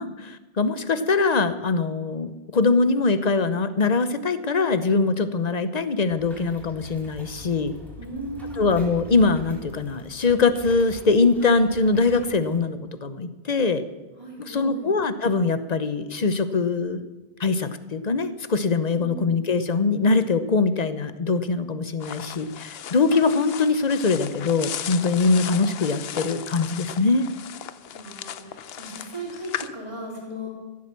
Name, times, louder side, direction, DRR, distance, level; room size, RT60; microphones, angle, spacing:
voice 1, 0.0-7.7 8.6-13.8 14.5-17.0 17.4-27.3, left 4 dB, 45° left, 12 dB, 0.9 m, -22 dB
sound 1, 6.1-12.6, left 2 dB, ahead, 4.2 m, -44 dB
voice 2, 8.0-8.7 14.2-14.9 18.9-19.3 25.3-25.4 27.9-30.5, right 1 dB, 30° right, -3 dB, 4.2 m, -37 dB
sound 2, 22.0-29.7, left 9 dB, 70° left, 0.9 m, -36 dB
14.5 x 8.5 x 7.5 m, 1.2 s
omnidirectional pair, 1.1 m